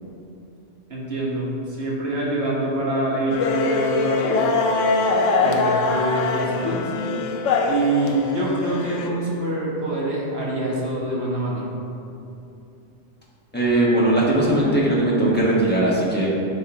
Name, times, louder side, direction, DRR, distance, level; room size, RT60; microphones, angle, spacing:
voice 1, 0.9-4.5 5.4-6.9 7.6-11.7, right 1 dB, 55° right, -5 dB, 1.5 m, -25 dB
sound 1, 3.3-9.1, left 3 dB, 90° left, 1.0 m, -23 dB
voice 2, 13.5-16.3, right 1 dB, 10° left, -7 dB, 1.3 m, -19 dB
9.9 x 4.7 x 2.9 m, 2.7 s
omnidirectional pair, 1.3 m